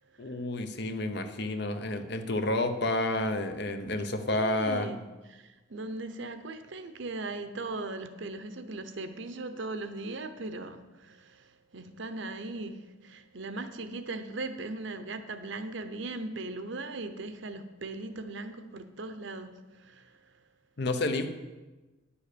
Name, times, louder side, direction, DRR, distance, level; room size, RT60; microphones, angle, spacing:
voice 1, 0.2-4.9 20.8-21.3, left 2 dB, 55° left, 8 dB, 0.9 m, -30 dB
voice 2, 4.3-5.0 5.3-5.4 5.7-11.2 11.7-12.8 13.0-19.5 19.9-20.0, right 2 dB, 70° right, 9 dB, 0.9 m, -38 dB
10.0 x 7.2 x 6.9 m, 1.2 s
head